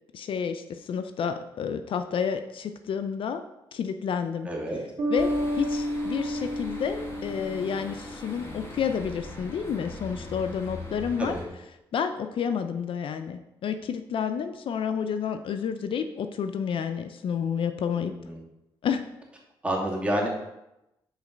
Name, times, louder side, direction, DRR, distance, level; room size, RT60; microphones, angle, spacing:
voice 1, 0.1-3.4 3.7-4.8 5.1-11.4 11.9-18.1 18.8-19.0, left 7 dB, 65° left, 9 dB, 0.5 m, -30 dB
voice 2, 4.5-4.8 11.2-11.4 18.0-18.4 19.6-20.3, right 1 dB, 10° right, -3 dB, 2.7 m, -29 dB
Bass guitar, 5.0-8.5, equal, 55° right, 2.7 m, -31 dB
sound 1, 5.2-11.5, left 2 dB, 25° left, 2.1 m, -41 dB
7.4 x 5.2 x 5.3 m, 0.92 s
cardioid pair, 70°, 10 cm